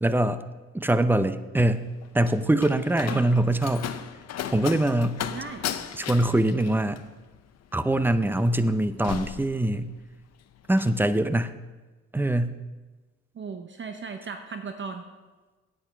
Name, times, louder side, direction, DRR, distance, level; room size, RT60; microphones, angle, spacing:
voice 1, 0.0-0.4 0.7-1.9 2.1-3.9 4.5-5.2 5.9-7.0 7.7-9.9 10.7-11.6 12.1-12.6, right 1 dB, 5° right, 12 dB, 0.5 m, -23 dB
Slam, 1.7-10.2 10.5-11.0, left 9 dB, 60° left, 0.7 m, -37 dB
voice 2, 5.3-5.7 13.3-15.1, right 5 dB, 40° right, 6 dB, 0.8 m, -36 dB
8.8 x 8.8 x 5.8 m, 1.2 s
cardioid pair, 90°, 30 cm